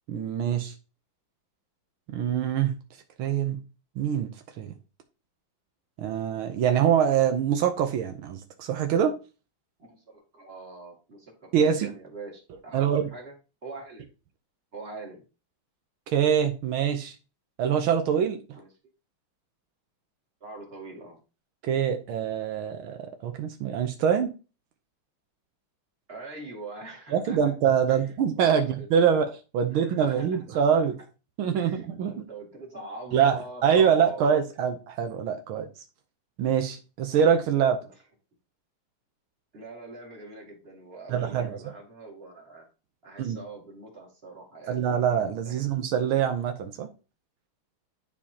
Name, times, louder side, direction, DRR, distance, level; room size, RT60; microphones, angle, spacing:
voice 1, 0.1-0.7 2.1-2.7 3.2-3.6 4.0-4.3 4.6-4.7 6.0-9.1 11.5-11.9 12.7-13.0 16.1-17.1 17.6-18.4 21.6-24.3 27.1-29.3 29.5-31.0 31.4-32.1 33.1-35.7 36.4-37.8 41.1-41.6 43.2-43.4 44.7-46.9, right 8 dB, 85° right, 1.6 m, -24 dB
voice 2, 9.8-13.3 13.6-14.1 14.7-15.2 18.5-18.7 20.4-21.2 26.1-27.4 27.9-28.0 28.5-28.9 29.7-30.9 31.5-34.3 39.5-42.7 43.0-44.8 45.4-45.9, right 2 dB, 30° right, 2.5 m, -43 dB
10.5 x 4.5 x 2.8 m
omnidirectional pair, 2.3 m